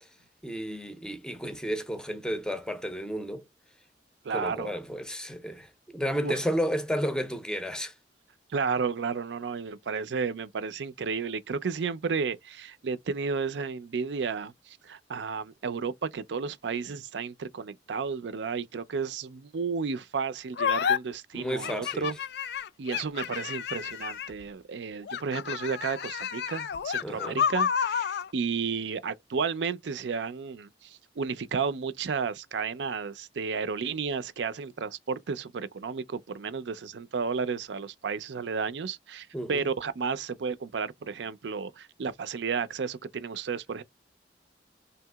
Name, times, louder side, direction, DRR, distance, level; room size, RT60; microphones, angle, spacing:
voice 1, 0.4-3.5 4.3-7.9 21.3-22.1 27.0-27.4 39.3-39.6, equal, 5° left, 0.5 m, -32 dB
voice 2, 4.2-4.7 6.2-6.4 8.5-22.2 22.8-43.8, right 5 dB, 85° right, 0.5 m, -32 dB
sound 1, 20.6-21.0 21.6-24.4 25.0-28.3, left 7 dB, 65° left, 0.3 m, -30 dB
3.4 x 2.8 x 2.3 m
head